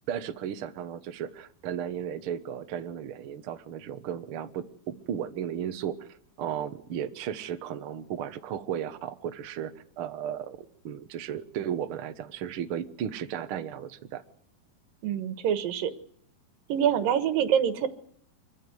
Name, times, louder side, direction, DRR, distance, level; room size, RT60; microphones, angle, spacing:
voice 1, 0.1-6.1 6.4-10.6 10.8-14.2, right 9 dB, 90° right, 8 dB, 1.1 m, -35 dB
voice 2, 15.0-15.9 16.7-17.9, right 9 dB, 70° right, 11 dB, 3.0 m, -25 dB
24.5 x 15.5 x 9.6 m, 0.65 s
omnidirectional pair, 4.5 m